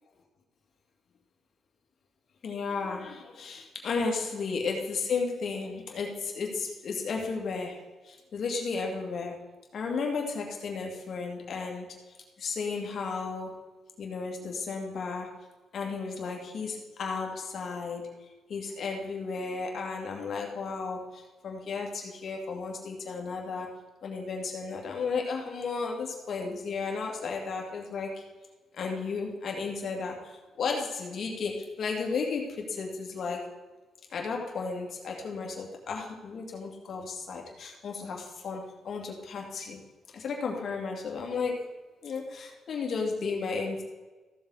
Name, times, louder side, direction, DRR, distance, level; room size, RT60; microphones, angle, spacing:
voice 1, 2.4-9.4 9.7-11.9 12.4-13.6 14.0-15.3 15.7-18.1 18.5-23.7 24.0-28.2 28.7-33.5 34.1-39.8 40.1-41.6 42.0-43.8, left 4 dB, 55° left, 1 dB, 2.4 m, -34 dB
15.0 x 7.2 x 4.2 m, 1.2 s
cardioid pair, 90°, 0 cm